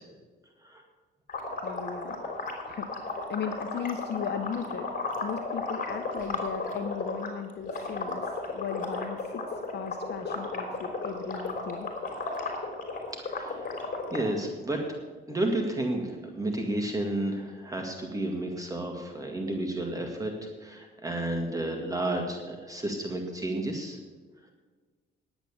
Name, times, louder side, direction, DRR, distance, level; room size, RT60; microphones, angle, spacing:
sound 1, 1.3-7.3 7.6-14.2, left 3 dB, 45° left, 3.6 m, -34 dB
voice 1, 1.6-2.2 2.6-4.9 5.2-11.9, left 7 dB, 60° left, 6 dB, 1.0 m, -37 dB
voice 2, 13.1-13.7 14.1-14.8 15.3-20.3 20.6-24.0, right 1 dB, 15° right, 2 dB, 2.0 m, -31 dB
10.5 x 9.1 x 7.2 m, 1.4 s
cardioid pair, 90°, 20 cm